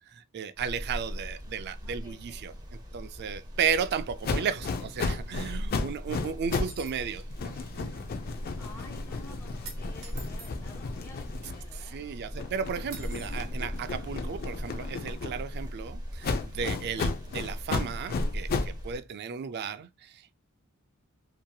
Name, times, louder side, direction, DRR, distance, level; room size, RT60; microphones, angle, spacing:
voice 1, 0.1-8.1 11.7-20.3, right 7 dB, 50° right, 0.3 m, -34 dB
sound 1, 0.6-19.0, equal, 20° right, 0.7 m, -39 dB
voice 2, 1.8-2.4 8.2-12.3, left 1 dB, 10° left, 1.1 m, -52 dB
sound 2, 4.2-6.8 7.1-11.9 12.3-15.7 16.2-18.8, left 4 dB, 45° left, 0.3 m, -34 dB
sound 3, 6.5-7.0 9.7-10.5 12.9-13.4, right 4 dB, 80° right, 1.0 m, -45 dB
2.8 x 2.7 x 2.2 m
head